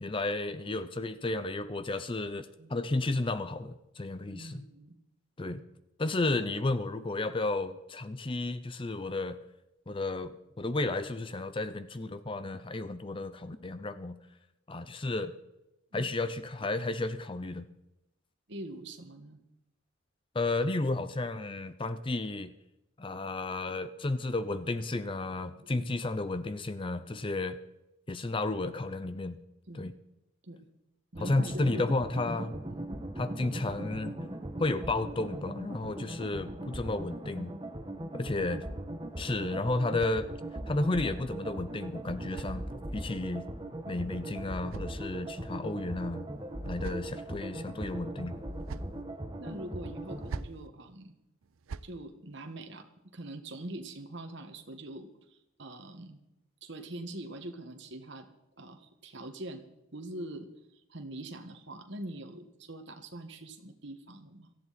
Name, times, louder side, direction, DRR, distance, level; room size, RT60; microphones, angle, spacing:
voice 1, 0.0-4.6 5.4-5.6 6.0-9.4 9.9-10.3 10.6-14.2 14.7-15.3 15.9-17.7 20.3-22.5 23.0-27.6 28.1-29.4 29.7-29.9 31.2-32.6 33.2-34.3 34.6-37.5 38.1-38.6 39.2-40.3 40.7-42.6 42.9-43.5 43.9-46.3 46.6-48.4, left 2 dB, 25° left, 12 dB, 0.5 m, -32 dB
voice 2, 4.3-4.9 15.9-16.1 18.5-19.4 25.8-25.9 29.7-29.9 30.4-30.6 31.1-31.8 32.7-32.8 48.8-48.9 49.4-51.1 51.8-52.8 53.1-56.2 56.6-58.3 58.6-59.6 59.9-60.5 60.9-64.5, right 1 dB, 55° right, 6 dB, 1.5 m, -44 dB
sound 1, 31.1-50.4, right 1 dB, 20° right, 1.2 m, -39 dB
sound 2, 39.1-40.7 41.7-43.2 44.2-45.5 46.3-47.4 48.3-49.0 50.0-50.7 51.4-52.0, right 4 dB, 75° right, 0.5 m, -46 dB
18.0 x 13.5 x 4.2 m, 0.91 s
head